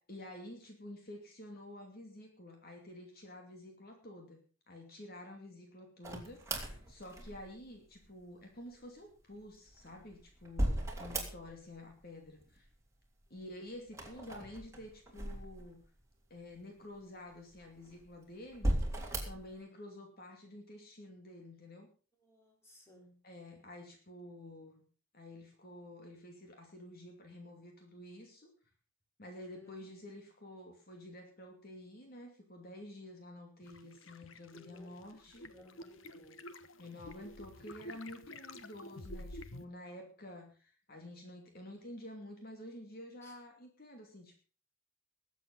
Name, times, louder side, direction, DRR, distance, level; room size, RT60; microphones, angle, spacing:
voice 1, 0.1-4.4 4.7-12.7 13.3-15.8 16.3-18.8 19.2-21.9 23.2-24.8 25.1-28.5 29.2-35.5 36.8-44.4, left 1 dB, 50° left, 3 dB, 2.7 m, -50 dB
sound 1, 6.0-7.7 9.5-11.8 12.0-12.7 13.9-16.0 16.6-16.7 17.5-18.1 18.5-19.5, right 1 dB, 15° right, 3.4 m, -37 dB
voice 2, 22.2-23.2 29.5-30.0 34.5-35.0 35.4-36.4 41.5-41.6 43.2-43.4, left 2 dB, 15° left, 1 dB, 4.1 m, -60 dB
sound 2, 33.6-39.6, left 1 dB, 80° left, 1.2 m, -50 dB
20.0 x 8.3 x 5.5 m, 0.38 s
head